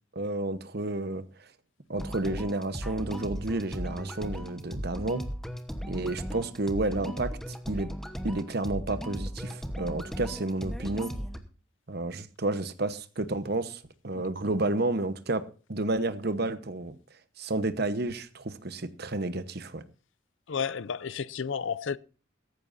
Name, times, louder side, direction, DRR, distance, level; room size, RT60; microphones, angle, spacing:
voice 1, 0.1-1.2 1.9-5.2 5.9-7.3 7.7-7.9 8.2-11.1 11.9-15.4 15.7-16.9 17.4-19.8, right 2 dB, 50° right, 1.1 m, -31 dB
sound 1, 1.9-11.4, equal, ahead, 1.1 m, -37 dB
voice 2, 20.5-22.0, left 6 dB, 70° left, 0.5 m, -32 dB
16.5 x 14.5 x 2.7 m
head